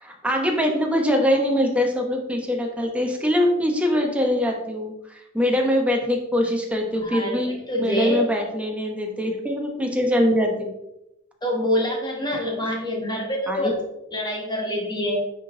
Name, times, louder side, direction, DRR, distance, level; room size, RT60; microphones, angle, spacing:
voice 1, 0.0-10.7 13.5-13.7, equal, 5° right, 1 dB, 1.1 m, -23 dB
voice 2, 7.0-8.2 11.4-13.8 14.1-15.2, left 1 dB, 20° left, -2 dB, 2.0 m, -26 dB
9.6 x 3.8 x 3.9 m, 0.90 s
head